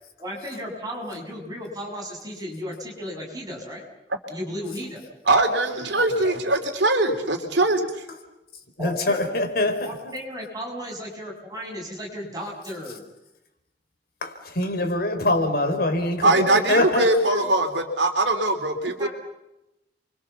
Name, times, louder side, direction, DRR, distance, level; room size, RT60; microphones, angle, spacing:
voice 1, 0.2-3.9 4.3-5.1 8.8-13.1 16.3-16.8 19.0-19.1, equal, 20° right, 0 dB, 7.3 m, -35 dB
voice 2, 5.3-8.1 16.2-19.1, right 2 dB, 75° right, 6 dB, 3.2 m, -21 dB
voice 3, 8.8-9.9 14.2-16.3 16.7-17.4, left 2 dB, 55° left, 6 dB, 4.3 m, -24 dB
30.0 x 24.5 x 7.1 m, 0.91 s
head